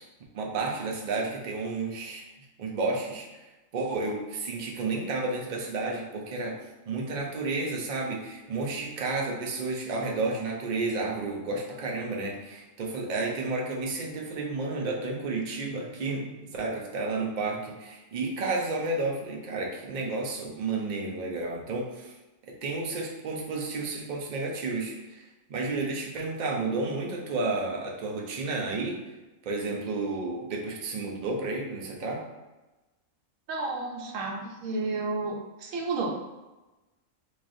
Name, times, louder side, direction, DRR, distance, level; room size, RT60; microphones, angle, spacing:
voice 1, 0.3-2.2 2.6-3.3 3.7-6.6 6.9-22.1 22.5-25.2 25.5-29.0 29.5-32.3, right 3 dB, 50° right, -1 dB, 0.6 m, -31 dB
voice 2, 33.5-36.2, right 3 dB, 85° right, 0 dB, 1.0 m, -31 dB
3.7 x 3.2 x 2.6 m, 1.1 s
omnidirectional pair, 1.3 m